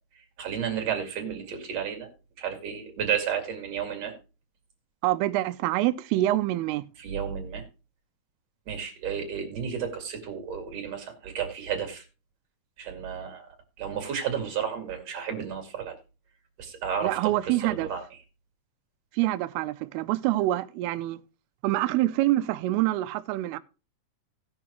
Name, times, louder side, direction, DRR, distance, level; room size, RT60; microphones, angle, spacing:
voice 1, 0.4-2.1 2.4-4.1 7.0-7.6 8.7-12.0 12.8-13.5 13.8-15.9 16.6-17.3 17.6-18.0, right 8 dB, 45° right, 2.9 m, -32 dB
voice 2, 5.0-6.8 17.0-17.9 19.1-21.2 21.6-23.6, right 16 dB, 85° right, 2.6 m, -26 dB
18.0 x 6.3 x 3.0 m
omnidirectional pair, 4.6 m